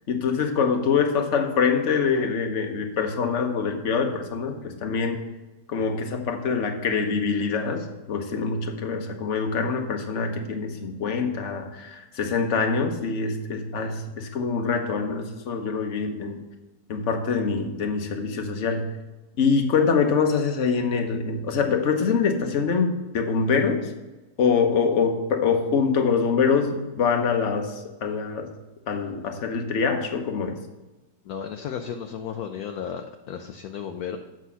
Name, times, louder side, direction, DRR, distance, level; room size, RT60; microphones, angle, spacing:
voice 1, 0.1-5.2 5.7-16.4 16.9-18.9 19.4-23.9 24.4-28.5 28.9-30.6, left 5 dB, 45° left, 4 dB, 1.2 m, -24 dB
voice 2, 31.2-34.2, left 8 dB, 65° left, 5 dB, 1.0 m, -34 dB
8.2 x 6.1 x 5.6 m, 1.1 s
omnidirectional pair, 1.9 m